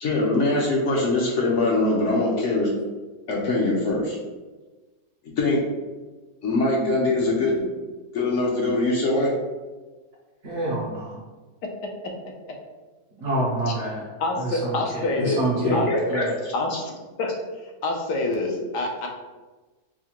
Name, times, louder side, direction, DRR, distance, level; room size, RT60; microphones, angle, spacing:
voice 1, 0.0-2.7 3.3-4.2 5.2-5.6 6.4-7.6 8.1-9.3 15.6-16.8, left 2 dB, 60° left, -3 dB, 0.8 m, -23 dB
voice 2, 10.4-11.2 13.2-14.0 14.4-16.3, right 2 dB, 60° right, -4 dB, 0.8 m, -27 dB
voice 3, 11.6-12.3 13.7-13.8 14.2-15.4 15.7-15.9 16.5-17.3 17.8-19.1, left 2 dB, 85° left, 1 dB, 1.3 m, -27 dB
4.7 x 2.1 x 2.9 m, 1.3 s
omnidirectional pair, 1.7 m